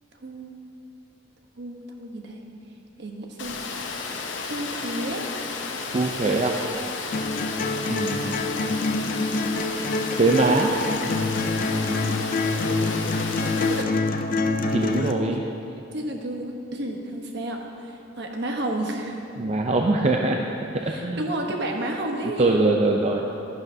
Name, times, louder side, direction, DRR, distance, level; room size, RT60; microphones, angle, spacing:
voice 1, 0.2-0.6 1.6-2.4 3.0-3.6 4.5-5.3 5.9-6.1 11.7-12.3 12.7-13.0 13.6-13.9 15.2-15.3 15.9-19.3 20.8-22.6, right 1 dB, 60° right, 1 dB, 1.0 m, -32 dB
Water, 3.4-13.8, left 4 dB, 75° left, 0.8 m, -33 dB
voice 2, 5.7-6.5 7.9-8.5 10.2-10.7 14.7-15.4 19.4-20.5 21.0-21.2 22.4-23.3, right 2 dB, 35° right, 1 dB, 0.5 m, -22 dB
sound 1, 7.1-15.1, left 3 dB, 45° left, 0.5 m, -26 dB
11.0 x 11.0 x 2.7 m, 2.8 s
head